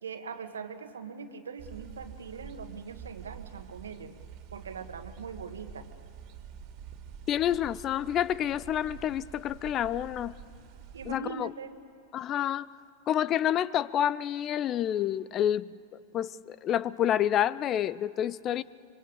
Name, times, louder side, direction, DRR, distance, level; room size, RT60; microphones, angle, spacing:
voice 1, 0.0-4.1 4.5-5.9 10.9-11.8, right 5 dB, 75° right, 9 dB, 1.6 m, -41 dB
sound 1, 1.6-11.2, right 8 dB, 45° right, 2.4 m, -47 dB
voice 2, 7.3-10.3 11.1-11.5 12.1-12.7 13.1-15.7 16.1-18.6, left 11 dB, 35° left, 20 dB, 0.5 m, -28 dB
25.5 x 23.5 x 8.1 m, 2.8 s
figure-of-eight pair, 95°, 0 cm